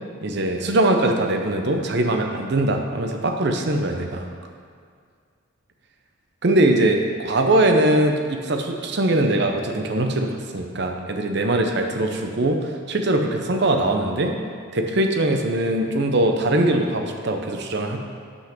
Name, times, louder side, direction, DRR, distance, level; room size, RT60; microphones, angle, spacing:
voice 1, 0.2-4.3 6.4-12.6 12.9-14.3 14.7-18.0, right 1 dB, 50° right, 4 dB, 0.7 m, -21 dB
5.8 x 5.5 x 5.9 m, 2.1 s
head